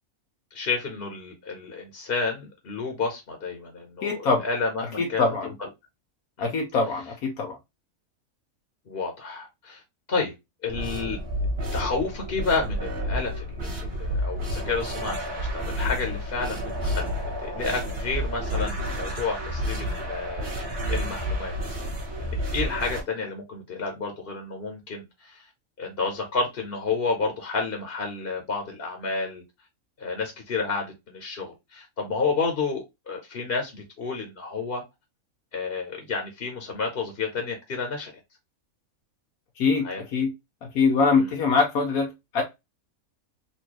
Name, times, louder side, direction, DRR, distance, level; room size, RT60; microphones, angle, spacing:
voice 1, 0.5-5.5 6.4-6.5 8.9-9.8 10.1-10.3 10.6-11.2 11.7-17.1 17.4-21.6 22.2-25.4 25.8-29.4 30.0-34.8 35.5-38.1 39.8-40.0 41.1-41.3, left 4 dB, 45° left, 1.1 m, -30 dB
voice 2, 4.0-4.4 5.0-5.5 6.4-7.6 39.6-40.3 40.7-42.4, left 4 dB, 85° left, 1.3 m, -23 dB
sound 1, 10.7-23.0, equal, 45° right, 1.8 m, -30 dB
4.4 x 2.7 x 2.9 m
omnidirectional pair, 1.5 m